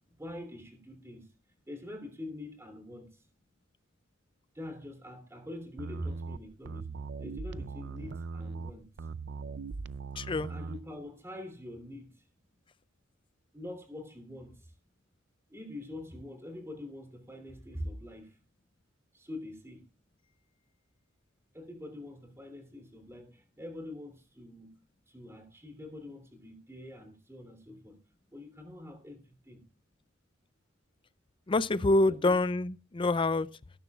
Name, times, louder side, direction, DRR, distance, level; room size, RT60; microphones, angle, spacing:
voice 1, 0.2-1.3 1.7-3.2 4.5-6.9 7.2-8.9 10.5-12.1 13.5-14.5 15.5-18.3 19.1-19.8 21.5-24.7 25.1-28.0 28.3-29.6 32.1-32.4, left 1 dB, 15° right, 3.2 m, -44 dB
sound 1, 5.8-10.8, right 4 dB, 60° right, 0.5 m, -40 dB
voice 2, 10.2-10.5 31.5-33.5, left 2 dB, 25° left, 0.4 m, -26 dB
18.5 x 11.0 x 2.4 m
head